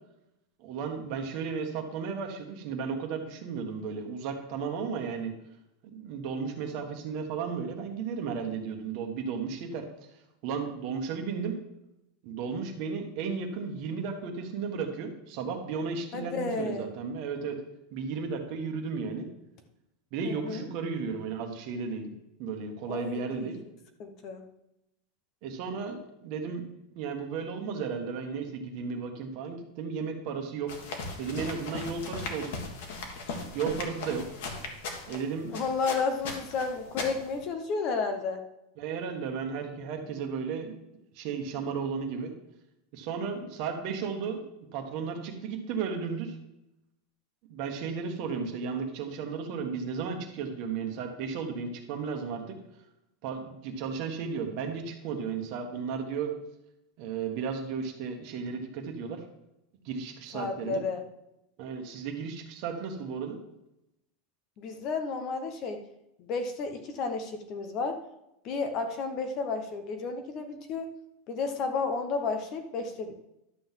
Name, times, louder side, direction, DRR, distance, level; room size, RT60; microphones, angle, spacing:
voice 1, 0.6-5.3 5.9-9.9 10.4-11.6 12.2-17.6 17.9-19.3 20.1-22.1 22.4-23.6 25.4-26.6 26.9-30.7 31.2-32.6 33.5-34.3 35.1-35.6 38.8-40.7 41.1-42.3 42.9-44.4 44.7-46.4 47.5-52.6 53.2-56.3 57.0-59.2 59.8-60.8 61.6-63.4, right 5 dB, 40° right, 4 dB, 1.4 m, -34 dB
voice 2, 16.1-16.9 20.2-20.7 22.9-23.5 24.0-24.4 35.5-38.4 60.3-61.0 64.6-65.9 66.2-68.0 68.4-70.9 71.3-73.1, left 4 dB, 30° left, 7 dB, 0.8 m, -32 dB
sound 1, 30.7-37.4, left 3 dB, 60° left, 1.7 m, -38 dB
11.5 x 3.9 x 7.4 m, 0.87 s
supercardioid pair, 175°, 0 cm